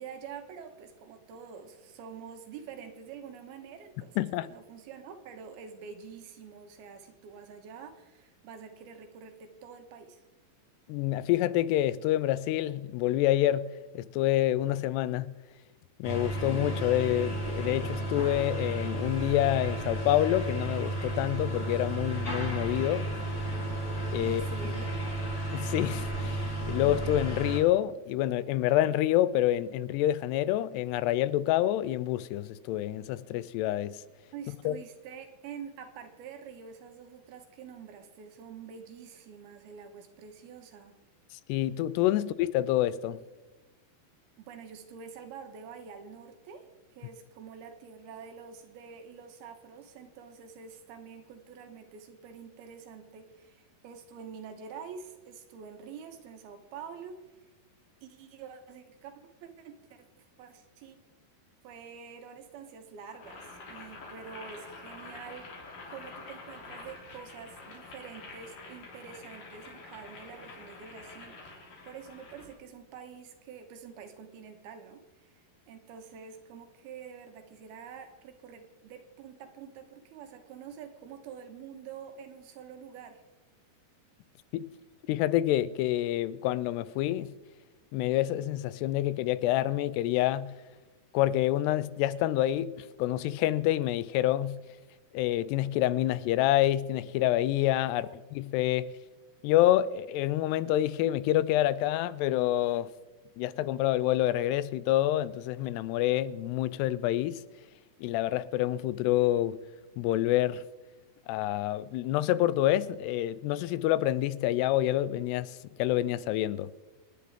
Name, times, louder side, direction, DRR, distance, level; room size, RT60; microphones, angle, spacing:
voice 1, 0.0-10.2 24.2-25.2 34.3-41.0 42.1-42.2 44.4-57.2 58.0-59.1 59.4-61.0 61.6-65.5 65.9-83.2 97.9-98.2, right 6 dB, 75° right, 3.0 m, -47 dB
voice 2, 4.2-4.5 10.9-15.4 16.0-23.1 24.1-24.4 25.5-34.0 34.7-34.8 41.5-43.2 84.5-84.7 85.1-87.4 87.9-90.6 91.1-94.7 95.1-98.9 99.4-102.9 103.4-107.4 108.0-109.6 110.0-110.6 111.3-116.7, left 14 dB, 85° left, 2.7 m, -27 dB
sound 1, 16.0-27.6, right 2 dB, 25° left, 3.3 m, -33 dB
Boiling, 63.1-72.5, left 3 dB, 55° left, 4.7 m, -47 dB
27.5 x 10.0 x 3.7 m
omnidirectional pair, 4.7 m